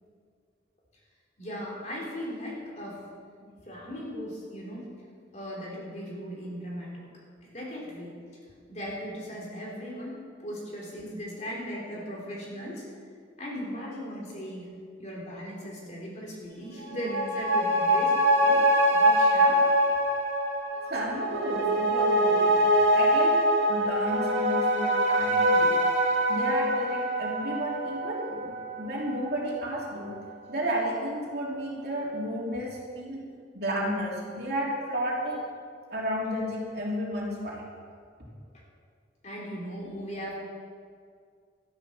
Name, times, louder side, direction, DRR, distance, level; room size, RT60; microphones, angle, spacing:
voice 1, 1.4-3.0 3.7-4.9 5.3-7.0 7.4-8.1 8.7-12.9 13.4-14.7 15.0-18.6 18.9-19.6 39.2-40.3, equal, 40° left, -3 dB, 3.6 m, -38 dB
sound 1, 16.8-29.7 30.0-30.1, equal, 85° right, 2.5 m, -24 dB
voice 2, 20.9-22.7 22.9-23.4 23.7-25.8 26.3-30.2 30.5-33.2 33.5-35.4 35.9-37.6, equal, 55° right, -4 dB, 3.0 m, -32 dB
12.5 x 11.0 x 6.4 m, 2.1 s
head